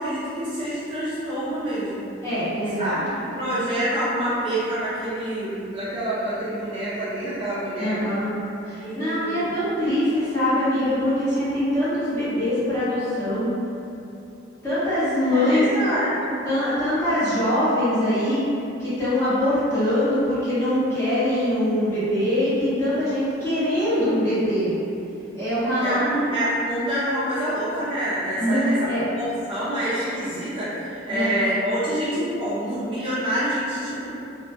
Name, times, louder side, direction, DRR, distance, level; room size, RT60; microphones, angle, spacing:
voice 1, 0.0-2.0 2.8-8.1 8.8-9.4 15.3-16.3 25.8-28.7 29.2-34.1, right 1 dB, 30° right, -11 dB, 0.4 m, -27 dB
voice 2, 2.2-3.0 7.8-8.3 8.6-13.5 14.6-15.6 16.5-18.4 18.8-24.7 25.3-26.0 28.4-29.1 31.1-31.5, left 1 dB, 15° left, -15 dB, 0.9 m, -23 dB
2.3 x 2.1 x 2.6 m, 2.7 s
head